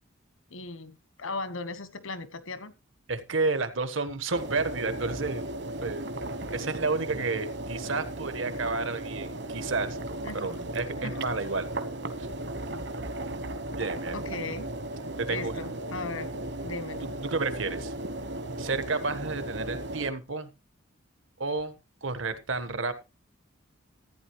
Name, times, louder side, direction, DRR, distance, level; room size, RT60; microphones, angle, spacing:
voice 1, 0.5-2.7 10.2-10.7 11.0-11.2 14.1-14.7 15.3-16.3 16.6-17.1, left 3 dB, 90° left, 12 dB, 1.3 m, -37 dB
voice 2, 3.1-5.5 5.8-6.0 6.5-10.0 10.3-11.7 12.2-12.3 13.8-14.3 15.2-15.6 17.2-17.9 18.6-20.5 21.4-22.9, right 3 dB, 75° right, 10 dB, 1.4 m, -31 dB
sound 1, 4.3-20.1, right 1 dB, 60° right, 1.2 m, -36 dB
15.0 x 9.3 x 3.1 m, 0.28 s
head